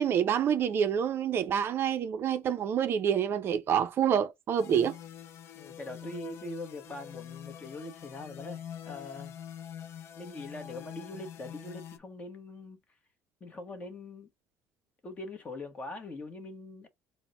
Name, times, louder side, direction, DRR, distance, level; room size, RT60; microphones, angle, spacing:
voice 1, 0.0-5.0, right 8 dB, 45° right, 0.5 m, -27 dB
sound 1, 4.6-12.0, left 9 dB, 50° left, 0.5 m, -45 dB
voice 2, 5.5-9.3 10.1-12.8 13.4-14.3 15.0-16.9, left 2 dB, 25° left, 1.0 m, -42 dB
4.1 x 2.1 x 3.9 m
cardioid pair, 140°, 6 cm